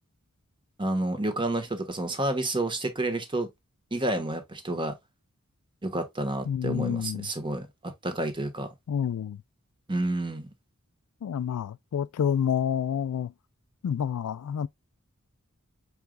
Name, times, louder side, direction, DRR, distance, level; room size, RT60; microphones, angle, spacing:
voice 1, 0.8-3.5 3.9-4.9 5.8-8.7 9.9-10.5, right 1 dB, 20° right, 1.2 m, -30 dB
voice 2, 6.5-7.3 8.9-9.4 11.2-13.3 13.8-14.7, left 8 dB, 80° left, 0.3 m, -28 dB
5.0 x 4.7 x 2.2 m
head